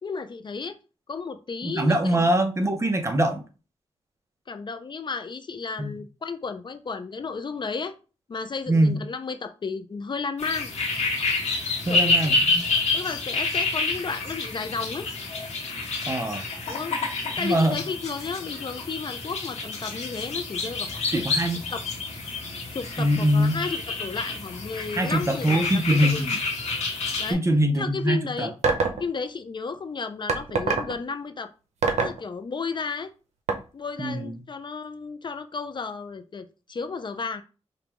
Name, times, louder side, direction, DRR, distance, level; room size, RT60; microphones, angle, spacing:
voice 1, 0.0-0.8 1.1-2.2 4.5-7.9 8.3-10.7 11.9-12.4 12.9-15.1 16.7-17.0 17.4-21.2 21.7-21.8 22.7-25.8 26.1-26.3 27.2-27.4 27.7-28.5 29.0-31.5 31.9-33.1 33.7-37.4, left 4 dB, 45° left, 0.4 m, -33 dB
voice 2, 1.6-3.4 5.8-5.9 8.7-9.0 11.9-12.4 16.1-16.4 17.4-17.8 21.1-21.6 23.0-23.6 25.0-26.4 27.3-28.5 34.0-34.3, right 1 dB, 25° right, 0.7 m, -23 dB
sound 1, 10.4-27.3, left 3 dB, 85° left, 1.3 m, -28 dB
sound 2, 28.6-29.0 30.3-30.9 31.8-32.2 33.5-33.6, right 4 dB, 85° right, 0.7 m, -22 dB
5.1 x 2.3 x 3.0 m
cardioid pair, 80°, 11 cm